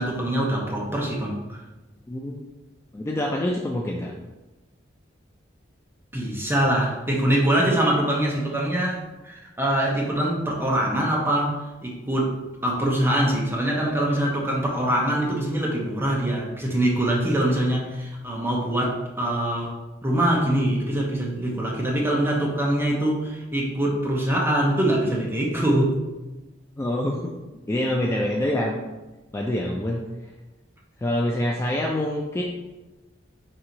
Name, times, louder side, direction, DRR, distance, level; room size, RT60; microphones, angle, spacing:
voice 1, 0.0-1.6 6.1-12.3 12.6-19.7 20.0-26.0, right 1 dB, 10° right, -2 dB, 0.7 m, -24 dB
voice 2, 2.1-2.4 2.9-4.1 26.8-27.2 27.7-28.8 29.3-30.1 31.0-32.4, left 1 dB, 15° left, -1 dB, 0.3 m, -25 dB
4.4 x 2.7 x 3.8 m, 1.1 s
head